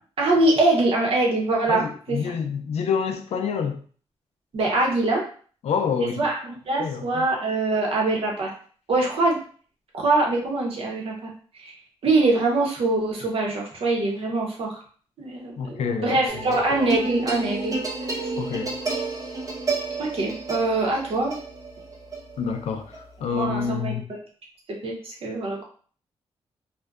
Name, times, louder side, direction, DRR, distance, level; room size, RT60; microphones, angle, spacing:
voice 1, 0.2-2.2 4.5-5.3 6.0-8.5 8.9-9.4 9.9-11.3 11.6-11.7 12.0-14.8 15.2-17.8 18.1-18.3 20.0-21.4 23.3-24.2 24.8-25.6, right 2 dB, 60° right, -1 dB, 0.8 m, -23 dB
voice 2, 1.7-3.8 5.6-6.1 6.8-7.2 15.6-16.6 18.4-18.7 22.4-24.0, left 6 dB, 80° left, 6 dB, 0.4 m, -27 dB
sound 1, 16.3-23.7, right 3 dB, 35° right, 0.6 m, -30 dB
2.6 x 2.2 x 2.3 m, 0.43 s
cardioid pair, 110°, 11 cm